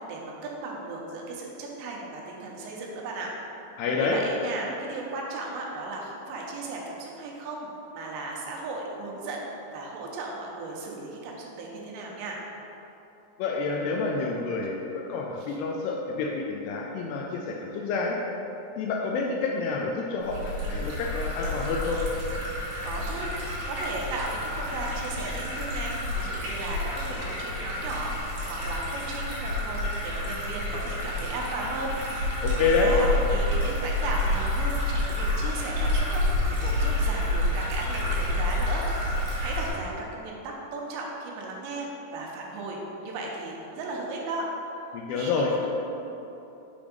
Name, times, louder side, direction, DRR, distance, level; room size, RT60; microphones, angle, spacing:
voice 1, 0.1-3.3 4.0-9.5 9.7-12.4 15.4-15.6 22.8-23.3 23.7-28.1 28.4-32.0 32.3-38.9 39.4-44.5 45.2-45.7, right 2 dB, 85° right, -1 dB, 3.0 m, -36 dB
voice 2, 3.8-4.2 13.4-18.2 18.8-22.0 32.4-32.9 44.9-45.5, left 4 dB, 85° left, -1 dB, 2.4 m, -28 dB
sound 1, 20.2-39.7, left 1 dB, 65° right, 3.3 m, -29 dB
7.1 x 3.5 x 5.1 m, 3.0 s
omnidirectional pair, 5.1 m